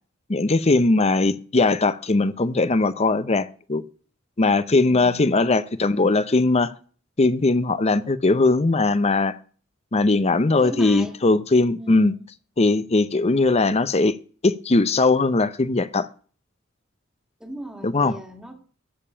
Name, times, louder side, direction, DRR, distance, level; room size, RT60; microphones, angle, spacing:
voice 1, 0.3-3.8 4.4-6.7 7.2-9.3 9.9-12.1 12.6-14.2 14.4-16.1 17.8-18.2, left 3 dB, 30° left, 0.7 m, -20 dB
voice 2, 4.8-5.4 10.6-11.1 11.8-12.2 17.4-18.6, right 1 dB, 5° right, 1.8 m, -37 dB
14.0 x 5.3 x 8.6 m
head